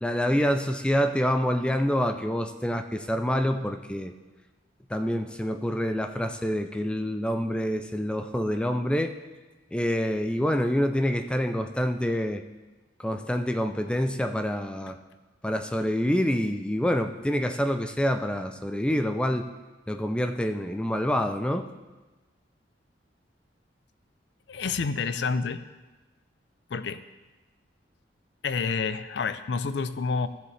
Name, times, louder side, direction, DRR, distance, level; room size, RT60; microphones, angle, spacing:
voice 1, 0.0-4.1 4.9-9.1 9.7-12.4 13.0-15.0 15.4-19.5 19.9-21.7, equal, 5° left, 6 dB, 0.4 m, -27 dB
voice 2, 24.5-25.6 26.7-27.0 28.4-30.3, left 4 dB, 65° left, 12 dB, 0.4 m, -28 dB
15.0 x 7.3 x 3.3 m, 1.2 s
head